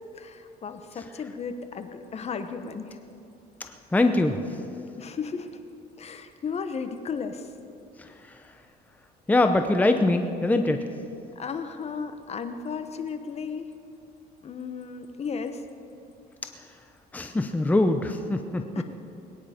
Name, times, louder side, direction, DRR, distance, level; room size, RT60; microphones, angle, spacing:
voice 1, 0.1-3.0 5.0-5.6 6.0-7.5 11.4-13.7 14.4-15.6 18.7-18.8, left 5 dB, 40° left, 9 dB, 1.0 m, -34 dB
voice 2, 3.6-4.4 9.3-10.9 17.1-18.6, left 2 dB, 10° left, 6 dB, 0.7 m, -23 dB
21.0 x 10.0 x 5.1 m, 2.6 s
cardioid pair, 110°, 17 cm